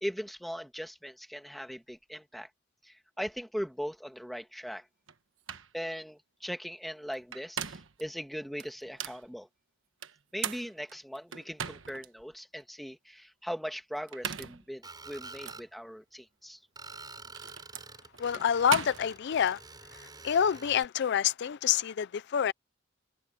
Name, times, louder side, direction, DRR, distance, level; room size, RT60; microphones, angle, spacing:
voice 1, 0.0-2.5 2.8-4.9 5.7-9.5 10.3-16.6, equal, ahead, 1.5 m, -39 dB
sound 1, 5.1-5.2 5.5-5.7 7.1-8.0 8.6-9.2 10.0-12.1 12.6-12.7 14.0-14.7 15.4-15.6 16.8-19.5, right 8 dB, 75° right, 1.2 m, -39 dB
Screech, 14.8-15.7 16.8-20.8, right 3 dB, 20° right, 5.9 m, -48 dB
voice 2, 18.2-19.6 19.9-22.5, left 8 dB, 60° left, 0.4 m, -27 dB
head